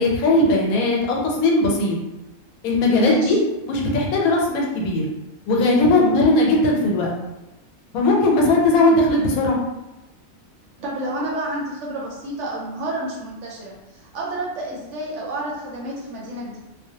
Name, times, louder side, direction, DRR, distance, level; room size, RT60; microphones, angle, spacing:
voice 1, 0.0-2.0 2.6-3.4 3.7-5.0 5.5-7.1 7.9-9.6, left 2 dB, 80° left, -1 dB, 1.1 m, -18 dB
voice 2, 2.9-3.4 6.0-6.2 10.8-16.6, right 1 dB, 65° right, -3 dB, 0.8 m, -29 dB
2.4 x 2.0 x 2.7 m, 1.0 s
omnidirectional pair, 1.5 m